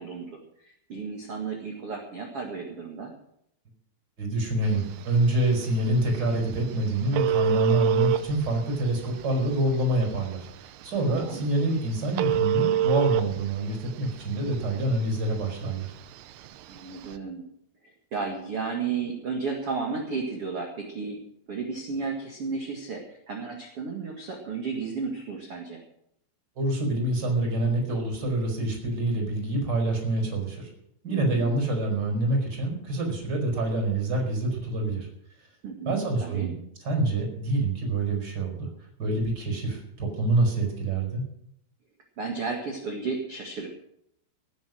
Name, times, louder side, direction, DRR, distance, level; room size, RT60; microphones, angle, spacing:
voice 1, 0.0-3.1 11.1-11.4 16.7-17.4 18.1-21.2 21.5-25.8 31.1-31.5 35.6-36.5 42.2-43.7, right 4 dB, 60° right, 1 dB, 1.5 m, -33 dB
voice 2, 4.2-15.9 26.6-30.7 31.0-35.1 35.8-36.5 36.8-38.7 39.0-41.2, right 2 dB, 20° right, 1 dB, 5.3 m, -26 dB
Telephone, 4.7-17.2, right 10 dB, 90° right, 2.2 m, -30 dB
17.5 x 9.8 x 6.3 m, 0.74 s
omnidirectional pair, 5.6 m